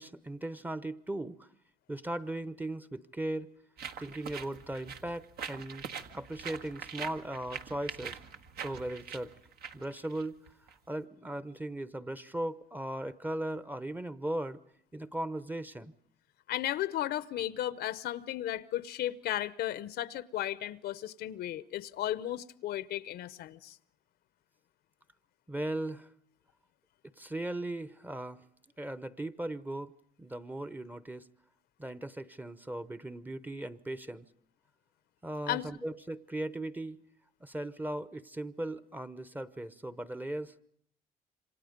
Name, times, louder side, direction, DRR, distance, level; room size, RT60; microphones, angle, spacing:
voice 1, 0.0-1.5 1.9-3.5 4.0-8.2 8.6-9.3 9.7-10.4 10.9-14.6 14.9-15.9 25.5-26.1 27.2-28.4 28.8-29.9 30.2-31.3 31.8-34.2 35.2-37.0 37.4-40.6, right 1 dB, 10° right, 0.9 m, -38 dB
sound 1, 3.8-10.8, right 7 dB, 65° right, 1.5 m, -43 dB
voice 2, 16.5-23.8 35.5-35.6, left 12 dB, 70° left, 0.9 m, -35 dB
27.5 x 25.5 x 5.2 m
cardioid pair, 110°, 17 cm